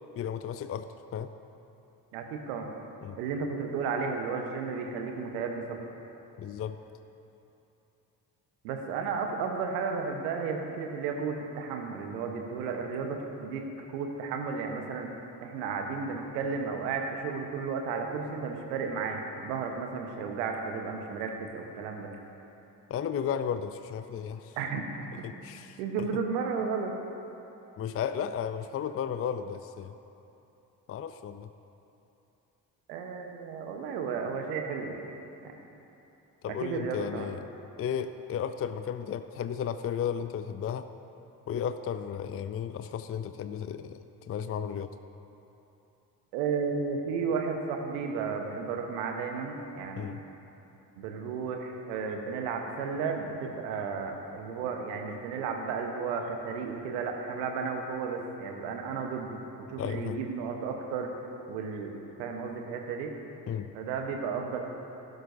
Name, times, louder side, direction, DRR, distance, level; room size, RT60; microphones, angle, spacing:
voice 1, 0.2-1.3 3.0-3.2 6.4-6.8 22.9-24.5 25.2-26.1 27.8-29.9 30.9-31.5 36.4-37.4 37.8-40.9 41.5-44.0 44.3-44.9 50.0-50.2 59.8-60.2 63.5-63.7, left 8 dB, 30° left, 11 dB, 0.5 m, -34 dB
voice 2, 2.1-2.7 3.2-5.8 8.6-13.6 13.9-15.1 15.4-22.1 24.6-24.9 25.2-25.4 25.8-26.9 32.9-35.0 35.4-35.6 36.5-37.3 46.3-50.2 51.0-61.1 61.5-63.1 63.7-64.7, right 5 dB, 75° right, 3 dB, 1.2 m, -33 dB
16.0 x 12.0 x 2.7 m, 2.9 s
hypercardioid pair, 40°, 49 cm